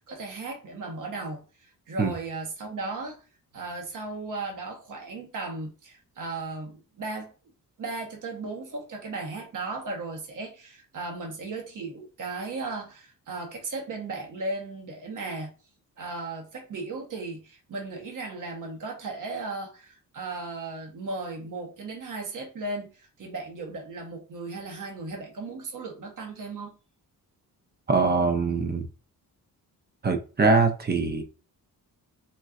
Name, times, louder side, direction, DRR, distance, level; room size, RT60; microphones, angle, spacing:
voice 1, 0.0-3.2 3.5-7.3 7.8-15.5 16.0-26.8, right 3 dB, 60° right, 1.0 m, -36 dB
voice 2, 27.9-28.9 30.0-31.2, right 4 dB, 30° right, 0.6 m, -23 dB
4.2 x 2.3 x 2.4 m
cardioid pair, 120°, 35 cm